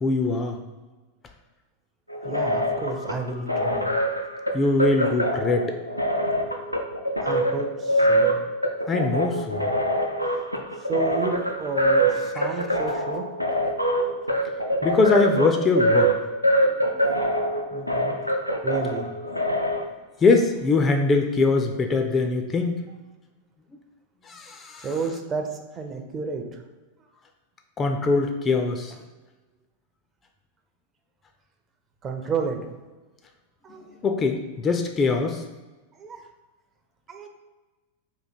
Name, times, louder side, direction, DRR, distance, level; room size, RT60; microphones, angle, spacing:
voice 1, 0.0-0.6 4.5-5.8 8.9-9.7 12.4-12.5 14.8-16.1 17.3-17.4 20.2-22.8 24.3-24.9 27.8-28.9 34.0-35.4, left 3 dB, 20° left, 5 dB, 0.4 m, -22 dB
sound 1, 2.1-19.8, equal, 90° left, 0.4 m, -24 dB
voice 2, 2.2-3.9 7.2-8.3 10.8-13.2 17.7-18.2 18.6-19.1 24.8-26.5 32.0-32.6 33.6-33.9 36.0-36.2 37.1-37.3, right 4 dB, 25° right, 4 dB, 0.6 m, -31 dB
3.7 x 2.7 x 4.2 m, 1.2 s
figure-of-eight pair, 90°, 0 cm